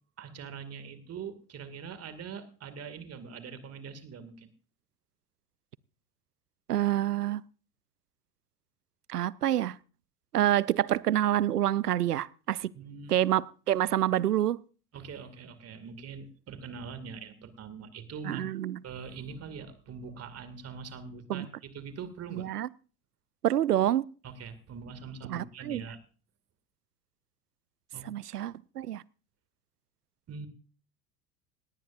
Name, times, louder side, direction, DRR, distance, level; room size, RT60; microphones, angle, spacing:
voice 1, 0.2-4.5 12.7-13.2 14.9-18.4 18.8-22.5 24.2-26.0 27.9-28.1 30.3-30.5, right 6 dB, 30° right, 2.3 m, -43 dB
voice 2, 6.7-7.4 9.1-9.8 10.3-12.7 13.1-14.6 18.2-18.8 21.3-21.5 22.3-22.7 23.4-24.1 25.3-25.8 28.0-29.0, right 12 dB, 85° right, 0.5 m, -27 dB
18.0 x 18.0 x 2.5 m
figure-of-eight pair, 75°, 46 cm